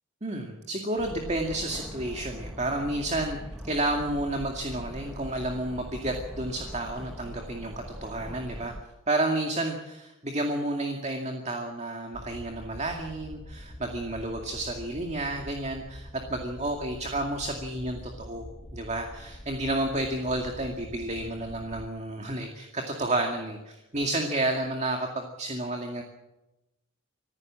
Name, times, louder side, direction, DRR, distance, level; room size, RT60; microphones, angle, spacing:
voice 1, 0.2-3.4 3.6-7.7 8.0-8.7 9.1-26.0, right 1 dB, 35° right, 3 dB, 2.2 m, -31 dB
sound 1, 1.0-8.8, equal, 5° right, 1.4 m, -41 dB
sound 2, 12.1-21.9, left 1 dB, 35° left, 1.5 m, -45 dB
26.0 x 15.0 x 7.6 m, 0.96 s
head